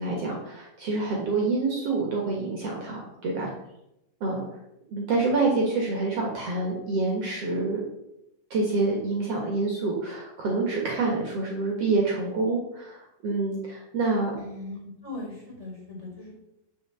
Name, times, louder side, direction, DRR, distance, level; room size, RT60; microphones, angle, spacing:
voice 1, 0.0-3.5 4.2-4.4 4.9-7.8 8.5-14.3, right 3 dB, 55° right, -1 dB, 2.5 m, -27 dB
voice 2, 14.4-16.3, left 2 dB, 10° left, -3 dB, 4.2 m, -39 dB
10.0 x 5.0 x 6.9 m, 0.86 s
omnidirectional pair, 3.5 m